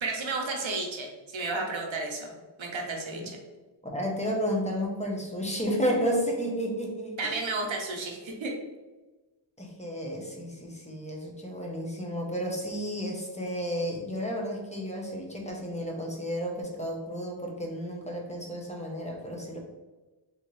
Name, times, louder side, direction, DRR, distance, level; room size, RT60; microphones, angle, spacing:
voice 1, 0.0-2.3 2.6-3.4 7.2-8.6, right 3 dB, 85° right, 1 dB, 0.8 m, -32 dB
voice 2, 3.8-7.4 9.6-19.6, equal, 15° left, -1 dB, 0.7 m, -32 dB
3.5 x 2.9 x 3.1 m, 1.2 s
wide cardioid pair, 70°, 45 cm